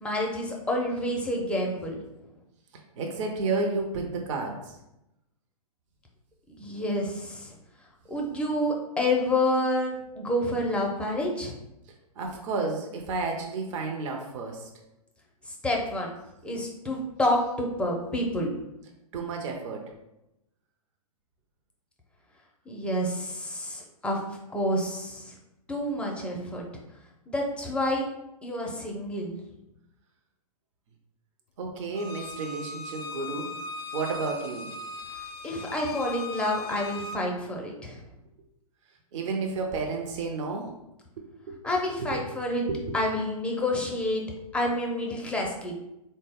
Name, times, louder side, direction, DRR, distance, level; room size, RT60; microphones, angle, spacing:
voice 1, 0.0-2.0 6.6-7.5 8.1-11.5 15.6-16.1 16.4-18.5 22.7-24.2 24.5-25.3 25.7-26.6 27.3-28.1 28.4-29.4 35.4-38.0 41.6-42.7 42.9-44.2 44.5-45.7, left 1 dB, 5° left, -1 dB, 0.4 m, -28 dB
voice 2, 3.0-4.8 12.2-14.7 19.1-19.9 31.6-33.5 33.9-34.7 39.1-40.7 41.5-41.6 42.0-42.2 42.7-42.9, right 3 dB, 50° right, 1 dB, 0.6 m, -31 dB
Bowed string instrument, 31.9-37.2, left 3 dB, 80° left, 0.4 m, -39 dB
3.8 x 2.1 x 3.4 m, 0.89 s
hypercardioid pair, 115°, 19 cm